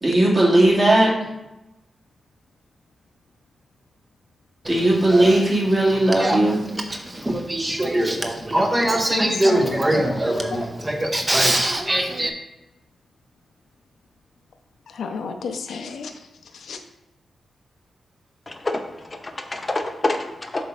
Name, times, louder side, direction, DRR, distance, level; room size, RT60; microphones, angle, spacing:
voice 1, 0.0-1.1 4.7-6.6, right 1 dB, 35° right, -5 dB, 2.5 m, -17 dB
Male speech man speaking / Female speech woman speaking / Conversation, 4.6-12.3, right 1 dB, 20° right, 0.8 m, -23 dB
voice 2, 8.9-10.6 14.9-16.1 16.5-16.8, left 5 dB, 85° left, 5 dB, 0.7 m, -32 dB
voice 3, 18.5-20.6, left 2 dB, 25° left, 4 dB, 0.9 m, -27 dB
7.5 x 3.5 x 5.5 m, 0.94 s
cardioid pair, 100°, 0 cm